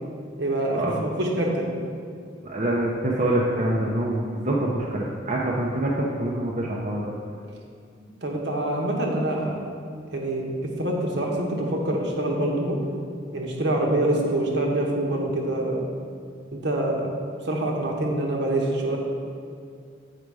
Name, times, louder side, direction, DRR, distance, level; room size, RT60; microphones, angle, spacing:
voice 1, 0.4-1.7 8.0-9.5 10.1-12.8 13.3-15.9 16.5-17.1 17.4-19.0, right 1 dB, 65° right, 0 dB, 1.1 m, -25 dB
voice 2, 2.4-7.1, right 1 dB, 40° right, -4 dB, 0.6 m, -25 dB
8.2 x 4.9 x 4.8 m, 2.2 s
head